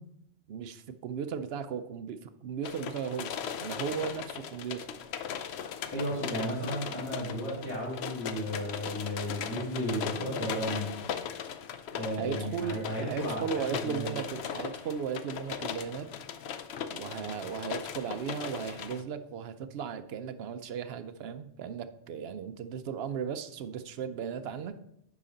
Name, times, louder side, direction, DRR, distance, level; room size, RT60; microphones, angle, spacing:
voice 1, 0.5-4.9 12.2-16.1 16.9-24.8, right 7 dB, 65° right, 10 dB, 0.8 m, -36 dB
sound 1, 2.6-19.0, left 8 dB, 70° left, 0.8 m, -38 dB
voice 2, 5.9-10.9 11.9-14.2, equal, 15° left, -8 dB, 2.2 m, -34 dB
9.7 x 5.0 x 3.8 m, 0.78 s
omnidirectional pair, 1.2 m